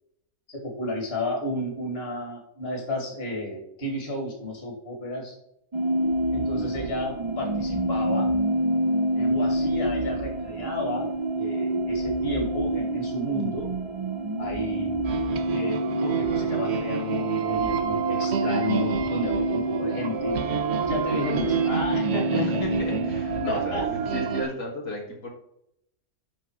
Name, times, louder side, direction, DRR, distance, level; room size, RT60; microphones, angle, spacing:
voice 1, 0.5-5.4 6.3-8.3 9.1-11.1 11.4-13.7 14.4-15.0 15.5-22.6 23.5-23.9, left 1 dB, 40° left, 0 dB, 2.6 m, -32 dB
sound 1, 5.7-24.4, right 1 dB, 30° right, 0.6 m, -28 dB
sound 2, 15.1-24.5, right 7 dB, 55° right, 0.9 m, -29 dB
voice 2, 22.3-25.3, left 1 dB, 75° left, -2 dB, 2.7 m, -33 dB
12.0 x 4.1 x 4.7 m, 0.76 s
omnidirectional pair, 1.5 m